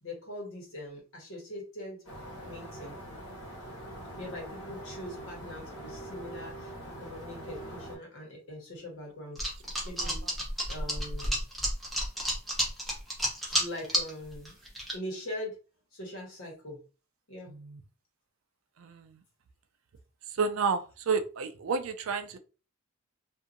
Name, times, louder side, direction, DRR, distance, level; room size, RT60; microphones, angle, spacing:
voice 1, 0.0-2.0 2.4-3.0 4.2-6.7 7.0-10.2 10.7-11.4 13.5-14.5 14.9-15.5 15.9-16.8 17.3-17.5, left 1 dB, 70° left, -2 dB, 1.3 m, -42 dB
sound 1, 2.0-8.0, right 1 dB, 90° left, 1.5 m, -43 dB
sound 2, 9.4-14.1 14.4-14.9, equal, ahead, 0.7 m, -30 dB
voice 2, 17.5-17.8 18.8-19.2 20.4-22.4, right 5 dB, 75° right, 8 dB, 0.4 m, -31 dB
2.7 x 2.5 x 2.5 m, 0.34 s
head